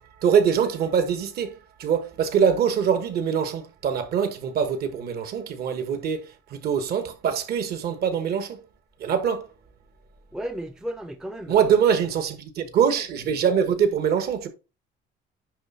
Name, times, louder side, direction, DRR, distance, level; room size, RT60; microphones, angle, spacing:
voice 1, 0.0-8.6 9.0-9.5 11.5-14.5, right 7 dB, 55° right, 1.3 m, -23 dB
voice 2, 10.3-11.8, equal, 5° right, 0.5 m, -34 dB
10.0 x 3.4 x 4.2 m
cardioid pair, 165°, 20 cm